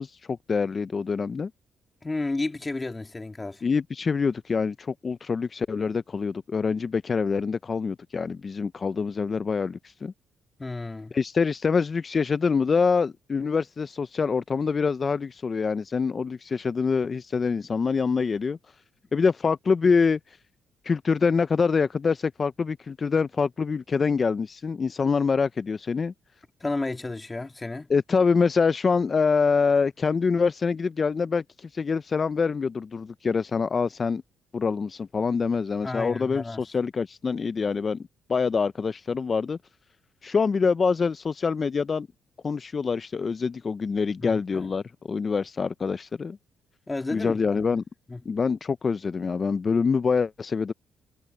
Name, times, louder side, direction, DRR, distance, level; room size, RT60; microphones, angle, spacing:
voice 1, 0.0-1.5 3.6-10.1 11.1-18.6 19.1-20.2 20.8-26.1 27.9-34.2 34.5-39.6 40.2-42.1 42.4-46.4 47.1-47.8 48.3-50.7, left 5 dB, 40° left, 0.4 m, -25 dB
voice 2, 2.0-3.6 10.6-11.1 26.6-27.9 35.8-36.6 44.2-44.7 46.9-47.6 48.1-48.2, left 2 dB, 20° left, 2.0 m, -32 dB
cardioid pair, 90°, 0 cm